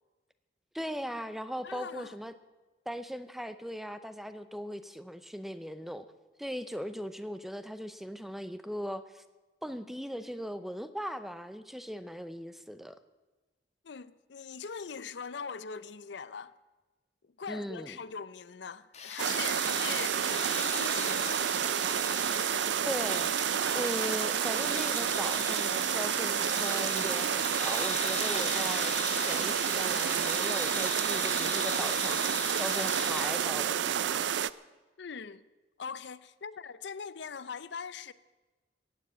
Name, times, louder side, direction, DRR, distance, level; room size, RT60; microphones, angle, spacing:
voice 1, 0.7-2.3 2.9-6.1 6.4-9.2 9.6-13.0 17.5-18.0 22.8-23.3 23.7-32.2 32.5-34.3, equal, ahead, 0.6 m, -39 dB
voice 2, 1.6-2.1 13.8-16.5 17.4-21.7 35.0-35.4 35.8-38.1, left 6 dB, 65° left, 0.5 m, -41 dB
sound 1, 18.9-33.7, left 6 dB, 35° left, 1.3 m, -39 dB
sound 2, 19.2-34.5, right 9 dB, 70° right, 0.4 m, -30 dB
15.5 x 9.3 x 8.6 m
head